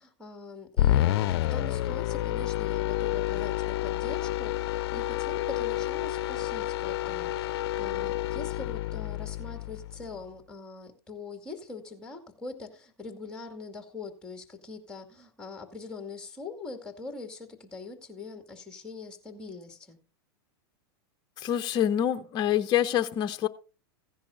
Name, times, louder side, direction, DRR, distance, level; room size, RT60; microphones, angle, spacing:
voice 1, 0.0-20.0, left 3 dB, 5° left, 2.3 m, -43 dB
sound 1, 0.8-10.1, left 14 dB, 65° left, 0.5 m, -29 dB
voice 2, 21.4-23.5, left 10 dB, 30° left, 0.7 m, -26 dB
15.5 x 10.5 x 2.6 m
hypercardioid pair, 125°, 14 cm